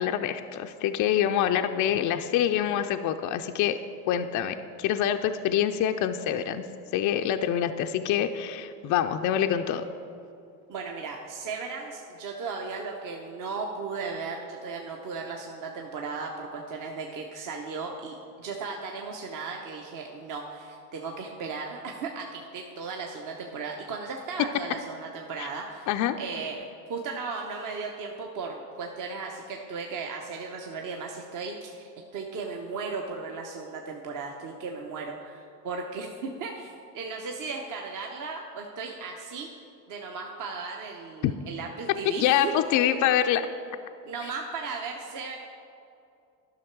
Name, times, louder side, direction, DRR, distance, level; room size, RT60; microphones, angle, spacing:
voice 1, 0.0-3.8 4.1-6.6 6.9-9.8 25.4-25.5 25.9-26.2 41.2-41.3 42.2-43.5, left 10 dB, 40° left, 7 dB, 0.4 m, -26 dB
voice 2, 10.7-25.9 26.2-39.5 39.9-42.5 42.8-43.0 44.0-45.4, right 4 dB, 40° right, 1 dB, 0.9 m, -36 dB
11.0 x 5.9 x 4.6 m, 2.6 s
hypercardioid pair, 85°, 49 cm